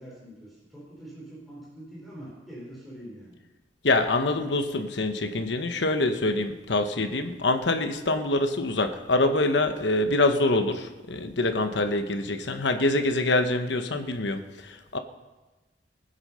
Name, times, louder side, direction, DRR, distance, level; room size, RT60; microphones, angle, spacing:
voice 1, 0.0-3.4, right 1 dB, ahead, -7 dB, 4.7 m, -44 dB
voice 2, 3.8-15.0, left 2 dB, 75° left, 7 dB, 1.1 m, -25 dB
20.0 x 8.0 x 5.6 m, 1.1 s
head